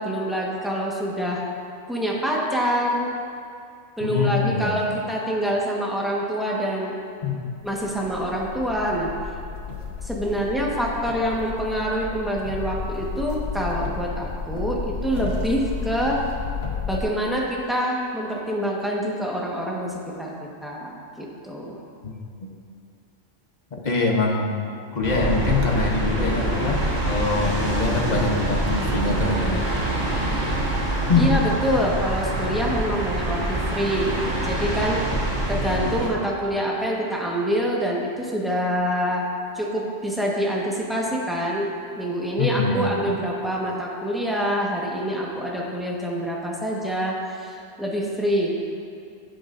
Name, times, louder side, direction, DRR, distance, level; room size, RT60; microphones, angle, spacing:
voice 1, 0.0-1.4 1.9-3.1 4.0-7.0 7.6-9.1 10.0-16.2 16.9-20.3 20.6-21.8 30.7-34.1 34.4-35.1 35.5-39.3 39.5-48.6, equal, ahead, -4 dB, 1.3 m, -26 dB
voice 2, 4.0-4.8 7.2-7.4 22.4-22.5 23.7-24.5 24.9-29.6 31.1-31.3 42.4-43.2, left 3 dB, 40° left, 0 dB, 1.1 m, -24 dB
sound 1, 7.7-17.0, left 5 dB, 60° left, 1.3 m, -32 dB
sound 2, 25.0-36.1, right 1 dB, 65° right, 2.6 m, -25 dB
14.5 x 7.7 x 2.6 m, 2.4 s
omnidirectional pair, 1.2 m